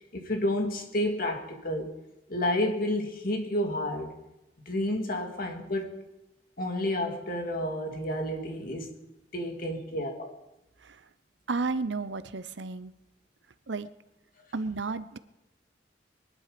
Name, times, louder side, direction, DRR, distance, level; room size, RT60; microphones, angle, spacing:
voice 1, 0.0-1.9 2.3-4.1 4.7-5.9 6.6-8.9 9.3-10.3, left 1 dB, 55° left, 3 dB, 2.5 m, -30 dB
voice 2, 11.5-12.9 13.7-13.9 14.5-15.2, right 3 dB, 80° right, 13 dB, 0.8 m, -32 dB
22.5 x 11.5 x 5.2 m, 0.97 s
head